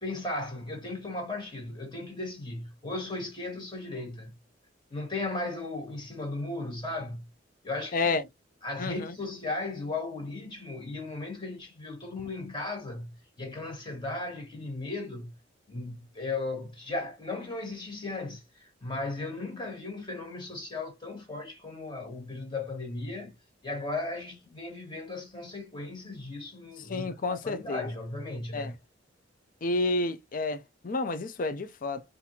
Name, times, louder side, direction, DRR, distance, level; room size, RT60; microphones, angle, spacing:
voice 1, 0.0-4.4 4.9-7.3 7.6-8.1 8.6-15.3 15.7-23.3 23.6-28.7, left 2 dB, 25° left, 1.7 m, -36 dB
voice 2, 7.9-8.2 8.8-9.1 26.9-27.9 28.5-28.7 29.6-32.0, left 3 dB, 45° left, 0.5 m, -30 dB
4.1 x 2.6 x 2.8 m
head